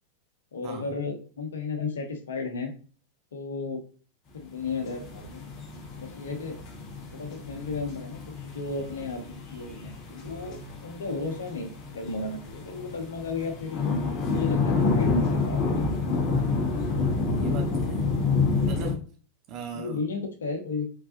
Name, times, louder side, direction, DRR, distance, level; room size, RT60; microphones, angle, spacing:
voice 1, 0.5-2.7 3.3-3.8 4.3-5.4 5.9-6.6 7.1-13.8 14.3-16.1 19.7-20.9, left 4 dB, 65° left, 3 dB, 1.1 m, -34 dB
sound 1, 4.7-18.9, left 4 dB, 30° left, 1.9 m, -28 dB
voice 2, 17.0-18.0 18.6-19.0 19.5-20.0, right 4 dB, 40° right, 2 dB, 1.2 m, -38 dB
4.6 x 4.0 x 2.6 m, 0.40 s
figure-of-eight pair, 90°, 0 cm